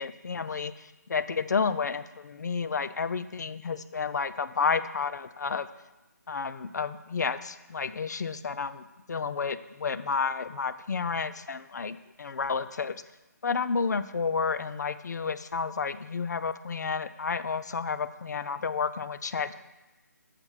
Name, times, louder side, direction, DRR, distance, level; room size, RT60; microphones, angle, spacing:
voice 1, 0.0-5.7 6.3-13.0 13.4-19.5, left 5 dB, 70° left, 13 dB, 0.5 m, -31 dB
6.7 x 4.6 x 5.7 m, 1.1 s
hypercardioid pair, 165°, 10 cm